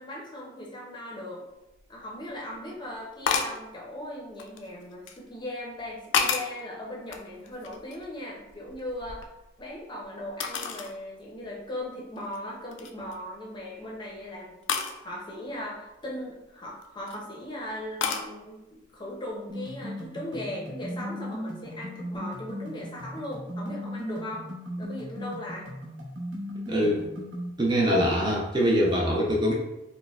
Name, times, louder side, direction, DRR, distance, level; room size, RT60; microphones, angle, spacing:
voice 1, 0.0-1.4 1.9-9.2 9.6-14.6 15.0-24.5 24.8-25.7, left 1 dB, 25° left, -2 dB, 0.6 m, -38 dB
sound 1, 1.8-1.9 3.3-3.6 4.4-5.2 5.8-6.6 7.1-8.1 8.5-9.8 10.4-11.0 11.4-11.5 12.2-12.4 12.7-13.1 14.7-15.0 16.7-17.2 18.0-18.3, left 6 dB, 70° left, 0.3 m, -30 dB
sound 2, 19.5-27.5, equal, 80° right, 0.9 m, -37 dB
voice 2, 26.7-27.1 27.6-29.5, equal, 25° right, -2 dB, 0.4 m, -23 dB
4.2 x 2.1 x 2.3 m, 0.98 s
head